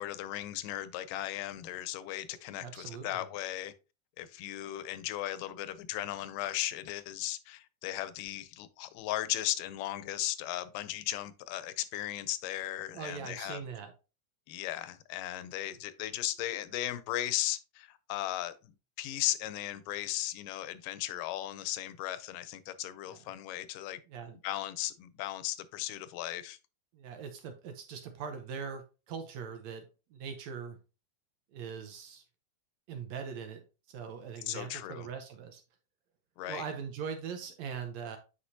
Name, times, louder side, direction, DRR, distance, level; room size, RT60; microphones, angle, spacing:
voice 1, 0.0-3.7 4.2-13.6 14.5-18.5 19.0-24.0 24.4-26.6 34.5-35.1 36.4-36.7, left 14 dB, 90° left, 2.3 m, -36 dB
voice 2, 2.3-3.3 12.9-13.9 23.1-23.2 24.1-24.4 26.9-29.9 30.1-30.8 31.5-32.2 32.9-35.6 36.5-38.2, right 6 dB, 70° right, 1.8 m, -41 dB
8.5 x 4.8 x 2.7 m
omnidirectional pair, 3.7 m